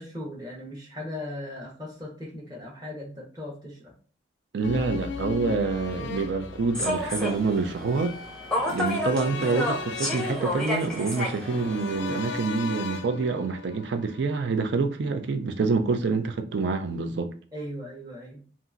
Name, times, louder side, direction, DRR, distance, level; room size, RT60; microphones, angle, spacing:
voice 1, 0.0-3.9 9.3-9.6 17.5-18.4, left 1 dB, 20° right, 1.0 m, -38 dB
voice 2, 4.5-8.2 8.6-17.3, right 4 dB, 70° right, 0.4 m, -27 dB
sound 1, 4.6-14.8 15.1-15.2, left 5 dB, 75° left, 0.3 m, -38 dB
Human voice / Subway metro underground, 6.7-12.5, left 1 dB, 5° left, 0.6 m, -31 dB
2.8 x 2.4 x 2.4 m
head